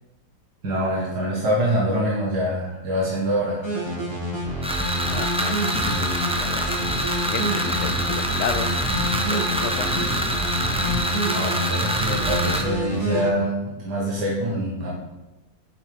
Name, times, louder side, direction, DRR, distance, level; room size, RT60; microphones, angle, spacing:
voice 1, 0.6-3.6 11.2-14.9, equal, 85° right, -5 dB, 2.0 m, -25 dB
sound 1, 3.6-13.3, equal, 15° left, 1.9 m, -28 dB
sound 2, 4.6-12.6, right 1 dB, 5° right, 0.5 m, -26 dB
voice 2, 4.8-6.7 7.3-8.8 9.2-9.9, left 7 dB, 75° left, 8 dB, 0.6 m, -32 dB
sound 3, 5.7-11.0, left 1 dB, 55° left, 2.4 m, -34 dB
9.1 x 7.3 x 3.5 m, 1.0 s
omnidirectional pair, 1.7 m